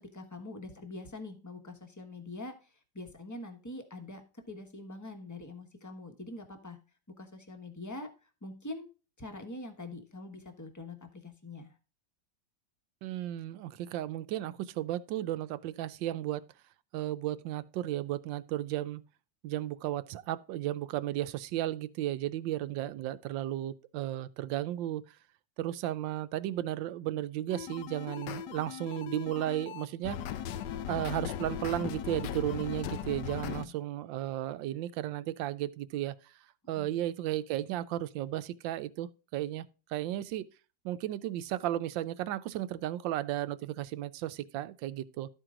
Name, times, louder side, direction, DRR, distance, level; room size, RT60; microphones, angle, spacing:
voice 1, 0.0-4.2 4.5-6.8 7.2-8.1 8.4-8.9 9.2-11.7 32.8-33.1 33.4-33.7 36.8-37.0, left 2 dB, 10° left, 0.9 m, -44 dB
voice 2, 13.0-16.4 16.9-19.0 19.4-25.0 25.6-30.2 30.9-36.3 36.7-40.4 40.8-45.3, right 13 dB, 80° right, 1.3 m, -34 dB
sound 1, 27.5-33.6, left 9 dB, 70° left, 1.1 m, -38 dB
13.0 x 4.6 x 3.7 m
omnidirectional pair, 2.0 m